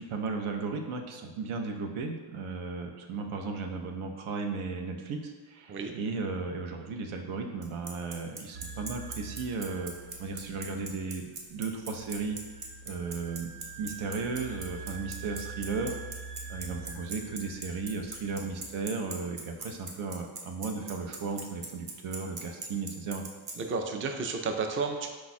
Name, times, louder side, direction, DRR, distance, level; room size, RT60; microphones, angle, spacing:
voice 1, 0.0-9.9 10.2-12.4 12.9-13.5 13.8-16.0 16.5-23.2, right 4 dB, 85° right, 3 dB, 0.7 m, -35 dB
Bicycle, 7.6-23.5, right 4 dB, 50° right, 0.9 m, -39 dB
sound 1, 8.5-19.8, right 4 dB, 70° right, 1.1 m, -45 dB
voice 2, 23.6-25.1, right 4 dB, 30° right, 4 dB, 0.4 m, -32 dB
4.8 x 2.3 x 4.1 m, 1.3 s
cardioid pair, 90°, 48 cm